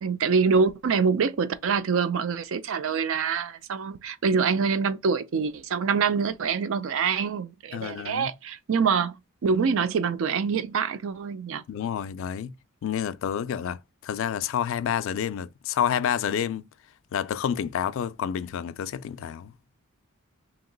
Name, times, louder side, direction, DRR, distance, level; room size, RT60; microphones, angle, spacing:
voice 1, 0.0-9.2 9.4-11.6, right 5 dB, 65° right, 0.4 m, -25 dB
voice 2, 7.7-8.3 11.7-12.5 12.8-16.6 17.1-19.5, left 8 dB, 60° left, 0.3 m, -29 dB
2.9 x 2.9 x 3.8 m
head